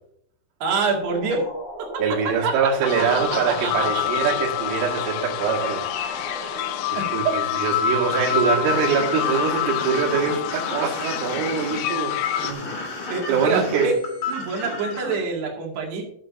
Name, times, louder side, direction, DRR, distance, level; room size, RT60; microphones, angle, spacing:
voice 1, 0.6-1.4 1.9-2.0 2.4-2.5 3.3-4.0 7.0-7.1 13.1-14.0 14.3-16.0, right 4 dB, 65° right, 0 dB, 4.0 m, -26 dB
sound 1, 0.7-8.1, right 1 dB, 25° left, 3.9 m, -38 dB
voice 2, 2.0-12.2 12.4-12.7 13.3-13.9, right 6 dB, 80° right, -1 dB, 4.4 m, -24 dB
sound 2, 2.8-12.5, left 16 dB, 80° left, 3.1 m, -28 dB
sound 3, 7.7-15.2, left 4 dB, 45° left, 3.2 m, -30 dB
13.5 x 11.0 x 2.6 m, 0.72 s
omnidirectional pair, 5.5 m